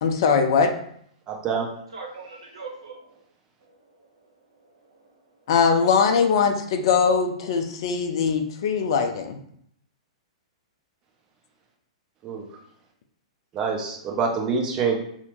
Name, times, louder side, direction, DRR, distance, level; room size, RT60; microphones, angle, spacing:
voice 1, 0.0-0.7 5.5-9.4, left 6 dB, 55° left, 5 dB, 0.4 m, -21 dB
voice 2, 1.3-1.7 12.2-12.5 13.5-14.9, right 5 dB, 25° right, 0 dB, 0.6 m, -26 dB
voice 3, 1.9-3.2 3.6-3.8 4.6-5.2, right 4 dB, 70° right, 0 dB, 0.8 m, -41 dB
2.8 x 2.0 x 3.0 m, 0.67 s
figure-of-eight pair, 105°, 3 cm